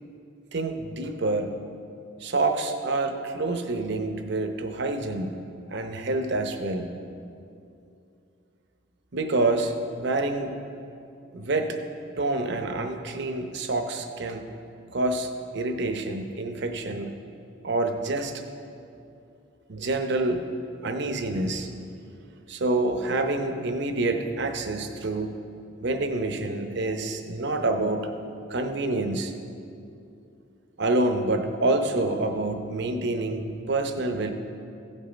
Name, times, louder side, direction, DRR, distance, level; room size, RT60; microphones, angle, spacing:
voice 1, 0.5-1.6 2.2-5.3 5.7-6.9 9.1-10.5 11.3-11.8 12.1-14.5 14.9-15.3 15.5-17.1 17.6-18.4 19.7-20.4 20.8-21.7 22.5-25.4 25.8-28.1 28.5-29.3 30.8-34.3, right 2 dB, 65° right, 6 dB, 0.8 m, -27 dB
16.0 x 5.5 x 5.1 m, 2.6 s
head